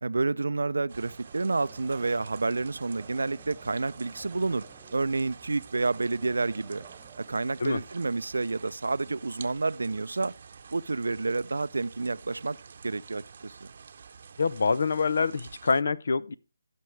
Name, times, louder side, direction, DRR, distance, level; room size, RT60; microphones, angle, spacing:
voice 1, 0.0-4.6 4.9-6.8 7.2-10.3 10.7-12.6 12.8-13.7, right 3 dB, 85° right, 0.5 m, -29 dB
sound 1, 0.7-15.6, right 7 dB, 10° right, 1.3 m, -57 dB
sound 2, 0.9-15.8, right 6 dB, 55° right, 0.8 m, -49 dB
voice 2, 14.4-16.3, left 4 dB, 70° left, 0.6 m, -26 dB
15.5 x 6.1 x 3.2 m
figure-of-eight pair, 155°, 0 cm